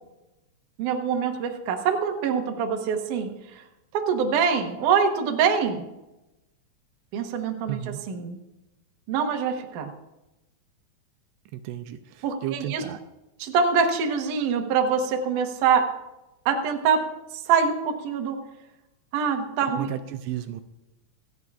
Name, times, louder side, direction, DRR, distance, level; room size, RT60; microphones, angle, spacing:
voice 1, 0.8-3.3 3.9-5.8 7.1-7.8 8.1-8.4 9.1-9.9 12.2-12.8 13.4-15.9 16.5-17.0 17.5-18.4 19.1-19.9, right 6 dB, 65° right, 3 dB, 2.2 m, -24 dB
voice 2, 7.7-8.0 11.5-13.0 19.8-20.6, right 12 dB, 85° right, 8 dB, 2.7 m, -33 dB
27.5 x 9.4 x 2.4 m, 0.96 s
omnidirectional pair, 5.0 m